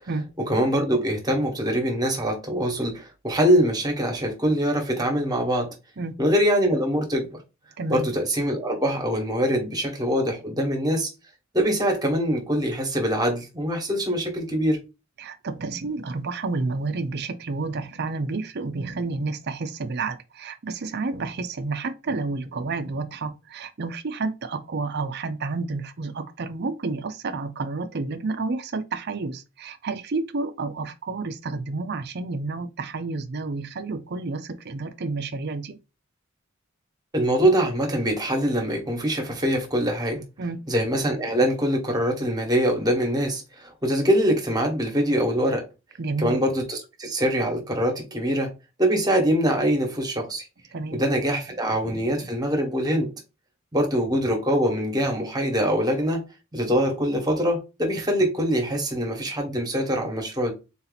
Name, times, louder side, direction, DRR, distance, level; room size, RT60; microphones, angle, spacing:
voice 1, 0.5-5.7 6.2-7.3 7.9-11.1 11.5-14.8 37.1-40.2 40.7-45.6 46.2-48.5 48.8-50.5 50.9-53.1 53.7-56.2 56.5-60.5, equal, 20° right, 1.3 m, -23 dB
voice 2, 7.8-8.1 15.2-35.8 40.4-40.6 46.0-46.4 50.7-51.0 51.8-52.3, right 3 dB, 50° right, 0.6 m, -30 dB
4.0 x 2.9 x 4.0 m
head